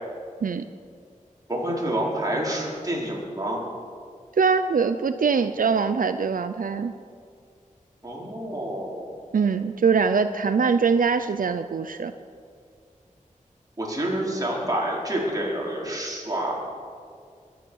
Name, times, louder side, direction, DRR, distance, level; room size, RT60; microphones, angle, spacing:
voice 1, 1.5-3.6 8.0-9.0 13.8-16.5, right 1 dB, 25° right, -4 dB, 4.4 m, -28 dB
voice 2, 4.4-6.9 9.3-12.1, right 5 dB, 85° right, 10 dB, 0.5 m, -22 dB
21.5 x 9.5 x 6.4 m, 2.2 s
wide cardioid pair, 75°, 14 cm